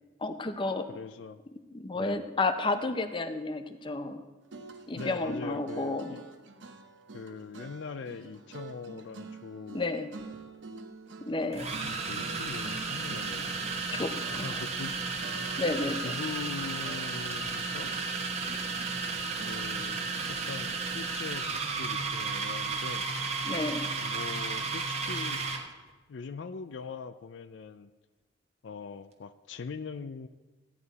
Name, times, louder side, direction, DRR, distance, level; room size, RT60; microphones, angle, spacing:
voice 1, 0.2-0.9 1.7-4.2 4.9-6.1 9.7-10.1 11.3-11.7 13.9-14.6 15.6-16.1 23.4-23.9, left 2 dB, 25° left, 9 dB, 0.7 m, -31 dB
voice 2, 0.9-1.4 1.9-2.3 5.0-6.2 7.1-9.9 11.8-13.6 14.4-14.9 16.0-17.9 19.4-23.1 24.0-25.4 26.1-27.9 28.6-30.3, left 5 dB, 65° left, 11 dB, 0.4 m, -41 dB
sound 1, 4.4-14.9 15.2-16.5 16.8-19.7, right 4 dB, 70° right, 0.9 m, -47 dB
sound 2, 10.2-10.4 11.5-25.7, right 4 dB, 35° right, 1.1 m, -33 dB
15.0 x 9.5 x 4.1 m, 1.2 s
head